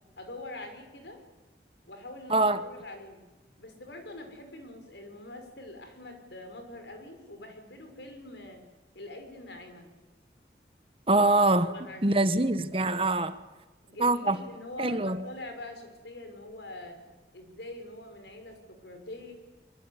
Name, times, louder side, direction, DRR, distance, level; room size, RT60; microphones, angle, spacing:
voice 1, 0.2-1.2 1.9-3.2 3.6-8.6 8.9-9.9 11.7-12.3 13.9-17.0 17.3-19.3, left 1 dB, 80° left, 5.8 m, -44 dB
voice 2, 2.3-2.6 11.1-11.7 12.0-13.3 14.0-14.4 14.8-15.2, right 2 dB, 30° right, 1.2 m, -24 dB
24.5 x 24.0 x 9.8 m
head